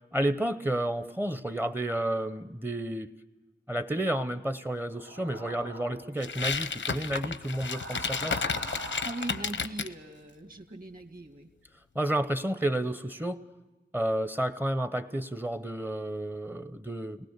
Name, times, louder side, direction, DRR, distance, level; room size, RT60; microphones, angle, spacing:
voice 1, 0.1-3.1 3.7-8.5 11.9-13.4 13.9-17.2, right 1 dB, 10° right, 12 dB, 0.7 m, -31 dB
sound 1, 4.9-6.1 7.4-9.5, right 1 dB, 80° right, 2.3 m, -42 dB
sound 2, 6.2-9.9, left 5 dB, 90° left, 0.8 m, -32 dB
voice 2, 9.0-11.5, right 2 dB, 50° right, 6 dB, 2.2 m, -40 dB
30.0 x 19.5 x 6.6 m, 1.2 s
wide cardioid pair, 85°, 19 cm